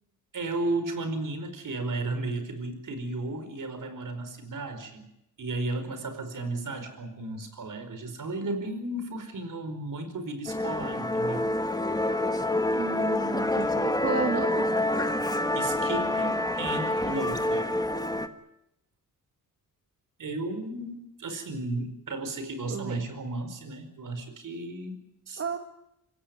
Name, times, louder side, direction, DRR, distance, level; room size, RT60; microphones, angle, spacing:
voice 1, 0.3-5.1 5.4-11.5 15.5-17.7 20.2-25.0 25.3-25.4, right 2 dB, 60° right, 9 dB, 4.9 m, -34 dB
Musical instrument, 10.5-18.3, left 1 dB, 10° left, 1.6 m, -27 dB
voice 2, 12.8-14.6 22.7-23.0 25.4-25.6, right 5 dB, 40° right, 5 dB, 1.8 m, -32 dB
25.5 x 17.0 x 9.5 m, 0.86 s
cardioid pair, 90°, 36 cm